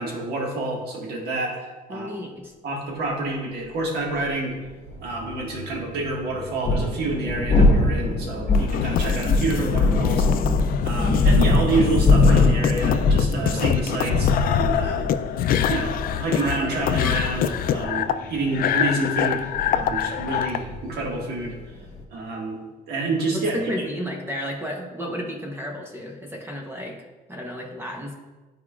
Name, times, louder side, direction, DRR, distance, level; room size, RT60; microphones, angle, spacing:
voice 1, 0.0-2.1 2.6-4.6 5.0-10.3 10.8-15.4 15.7-21.5 22.1-22.6 22.9-23.6, right 2 dB, 75° right, -1 dB, 1.7 m, -28 dB
voice 2, 1.9-2.5 23.3-28.1, equal, 15° right, 1 dB, 0.9 m, -33 dB
sound 1, 4.2-4.3 6.4-22.0, left 3 dB, 35° left, 1.2 m, -22 dB
sound 2, 4.9-20.9, right 1 dB, 90° right, 1.3 m, -44 dB
sound 3, 8.5-20.6, left 8 dB, 60° left, 0.4 m, -25 dB
11.0 x 4.8 x 2.4 m, 1.2 s
cardioid pair, 110°, 17 cm